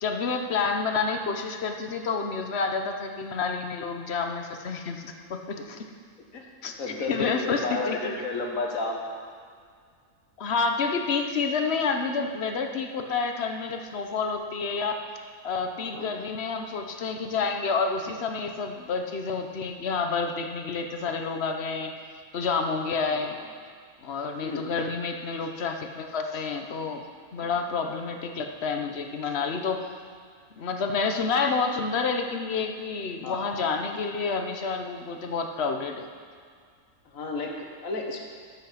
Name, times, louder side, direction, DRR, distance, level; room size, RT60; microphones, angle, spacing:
voice 1, 0.0-5.9 6.6-8.1 10.4-15.0 15.4-21.9 22.3-23.4 24.0-27.1 27.3-29.9 30.6-36.1, left 4 dB, 55° left, 5 dB, 1.0 m, -29 dB
voice 2, 6.8-9.0 15.8-16.1 23.1-23.5 24.4-24.6 27.4-27.5 33.2-33.6 37.1-38.2, left 3 dB, 70° left, 1 dB, 1.8 m, -32 dB
12.0 x 8.1 x 5.8 m, 2.1 s
omnidirectional pair, 1.5 m